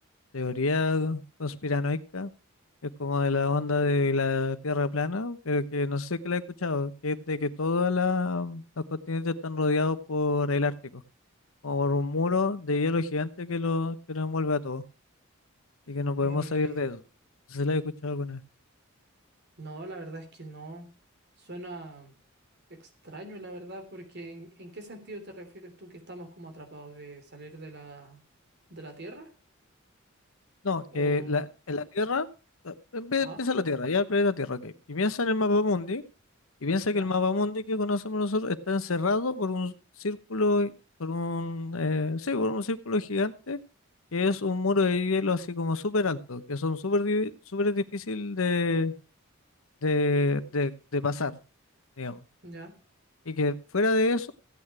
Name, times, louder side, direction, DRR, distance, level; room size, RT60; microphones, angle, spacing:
voice 1, 0.3-2.3 2.8-11.0 11.6-14.8 15.9-17.0 17.5-18.4 30.6-32.3 32.6-36.0 36.6-39.7 40.0-40.7 41.0-43.6 44.1-48.9 49.8-51.4 52.0-52.2 53.3-54.3, left 3 dB, 80° left, 12 dB, 1.0 m, -27 dB
voice 2, 16.2-16.9 19.6-20.9 21.4-22.1 22.8-28.2 28.7-29.3 30.9-31.4 33.2-33.4 36.9-37.1 52.4-52.7, right 2 dB, 50° right, 5 dB, 3.2 m, -43 dB
15.5 x 9.0 x 4.8 m, 0.34 s
head